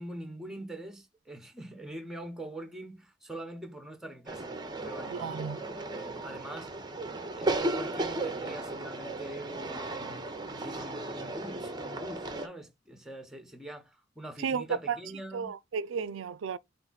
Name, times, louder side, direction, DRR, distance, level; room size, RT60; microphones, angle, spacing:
voice 1, 0.0-5.3 5.9-6.8 7.2-15.5, right 1 dB, 5° right, 0.9 m, -44 dB
sound 1, 4.3-12.5, right 2 dB, 20° right, 0.6 m, -35 dB
voice 2, 5.1-5.6 14.4-15.0 15.3-16.6, right 6 dB, 85° right, 0.4 m, -33 dB
4.7 x 2.5 x 3.9 m
head